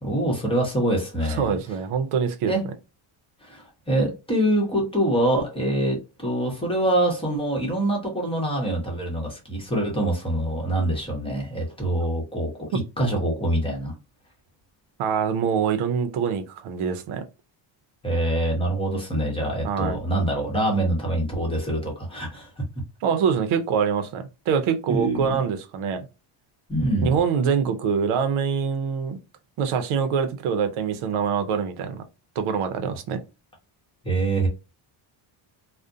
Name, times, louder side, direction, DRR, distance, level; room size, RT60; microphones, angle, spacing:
voice 1, 0.0-1.6 2.5-2.6 3.4-13.9 18.0-22.5 24.9-25.4 26.7-27.1 34.0-34.5, right 1 dB, 10° left, 0.9 m, -25 dB
voice 2, 1.4-2.5 15.0-17.2 19.6-20.0 23.0-26.1 27.0-29.2 29.6-32.0 32.4-33.2, right 6 dB, 80° right, 0.6 m, -24 dB
2.4 x 2.1 x 2.5 m
cardioid pair, 135°, 49 cm